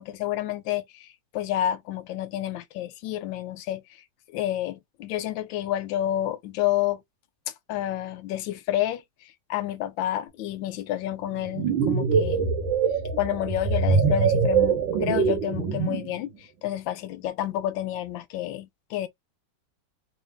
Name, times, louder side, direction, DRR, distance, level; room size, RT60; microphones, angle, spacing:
voice 1, 0.0-7.0 7.7-12.5 13.2-19.1, left 12 dB, 85° left, 1.3 m, -29 dB
sound 1, 11.3-16.1, right 5 dB, 85° right, 1.7 m, -23 dB
4.0 x 2.2 x 3.3 m
omnidirectional pair, 2.0 m